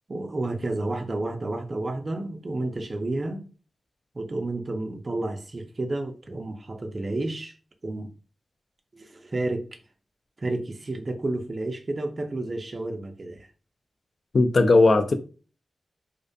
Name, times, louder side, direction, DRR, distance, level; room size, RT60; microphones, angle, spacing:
voice 1, 0.1-3.5 4.1-7.5 7.8-8.1 8.9-9.8 10.4-13.5, right 2 dB, 35° right, 0.4 m, -31 dB
voice 2, 14.3-15.1, left 3 dB, 55° left, 0.3 m, -17 dB
2.4 x 2.2 x 2.6 m
wide cardioid pair, 110°, 0 cm